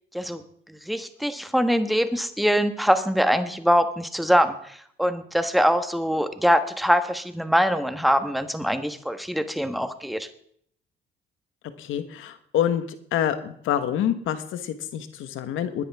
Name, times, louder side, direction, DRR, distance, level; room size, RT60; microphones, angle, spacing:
voice 1, 0.7-10.3, equal, ahead, 9 dB, 1.4 m, -23 dB
voice 2, 11.8-12.8 13.1-15.8, left 10 dB, 85° left, 10 dB, 1.4 m, -26 dB
20.5 x 10.0 x 3.6 m, 0.63 s
cardioid pair, 90°, 20 cm